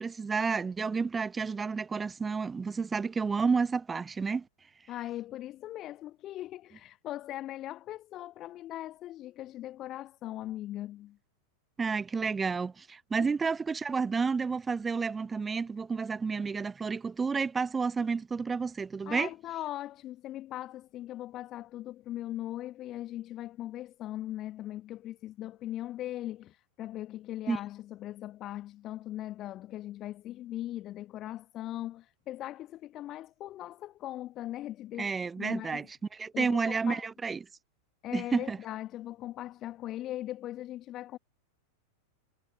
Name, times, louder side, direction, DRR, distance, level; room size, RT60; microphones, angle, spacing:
voice 1, 0.0-4.5 11.8-19.3 27.5-27.6 35.0-35.9 36.1-37.4 38.1-38.6, right 5 dB, 15° right, 0.8 m, -30 dB
voice 2, 4.9-11.2 13.2-13.3 19.0-35.9 36.3-37.1 38.0-41.2, left 14 dB, 35° left, 1.2 m, -40 dB
figure-of-eight pair, 90°, 0 cm